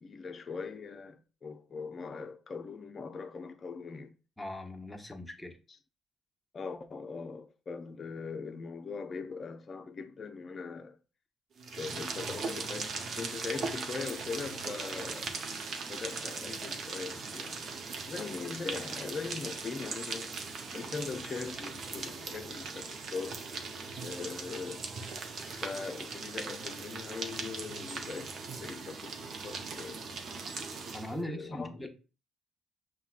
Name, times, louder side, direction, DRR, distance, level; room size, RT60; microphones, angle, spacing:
voice 1, 0.0-4.1 6.5-11.0 11.8-15.3 15.9-17.8 18.1-20.3 20.7-23.4 24.0-24.9 25.4-28.3 28.6-30.2 31.1-31.9, left 4 dB, 40° left, 0.4 m, -41 dB
voice 2, 4.4-5.6 30.9-31.9, left 1 dB, 5° left, 0.9 m, -40 dB
sound 1, 11.6-31.2, right 4 dB, 60° right, 0.6 m, -39 dB
5.6 x 2.2 x 2.4 m
supercardioid pair, 75°, 0 cm